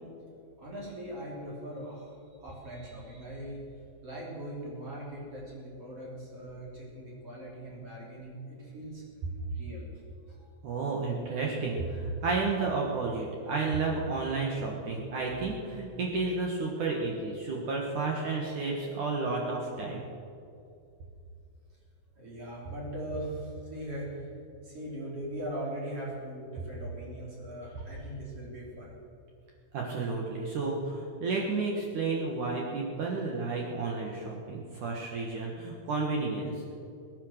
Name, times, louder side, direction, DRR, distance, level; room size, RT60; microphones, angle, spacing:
voice 1, 0.6-3.6 4.0-9.0 9.5-9.9 10.4-10.5 22.2-24.3 24.6-28.9 34.9-35.2, right 1 dB, 30° right, -4 dB, 4.0 m, -40 dB
voice 2, 10.6-20.0 27.8-27.9 29.7-36.7, right 3 dB, 65° right, -1 dB, 2.0 m, -31 dB
22.0 x 9.9 x 6.5 m, 2.5 s
omnidirectional pair, 5.6 m